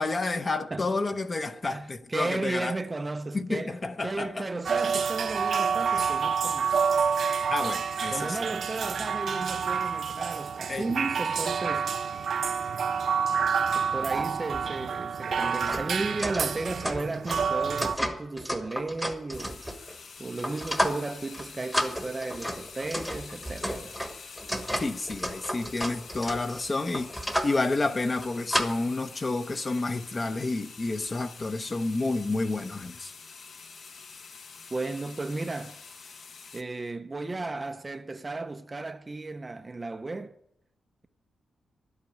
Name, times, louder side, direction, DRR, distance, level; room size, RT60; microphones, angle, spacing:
voice 1, 0.0-2.8 3.3-4.5 7.5-8.4 10.7-10.8 24.8-27.1 27.4-33.1, left 3 dB, 25° left, 0.8 m, -30 dB
voice 2, 1.7-6.9 8.1-11.9 13.7-24.0 34.7-35.8 36.5-40.4, right 3 dB, 20° right, 0.5 m, -34 dB
sound 1, 4.6-17.9, right 6 dB, 55° right, 0.8 m, -28 dB
sound 2, 14.2-14.3 14.5-14.6 15.3-20.0 20.4-21.1 21.3-21.5 21.7-27.6 28.1-28.7, equal, 5° left, 1.2 m, -32 dB
sound 3, 19.3-36.6, left 5 dB, 55° left, 1.0 m, -47 dB
12.0 x 8.3 x 9.1 m
wide cardioid pair, 160°, 0 cm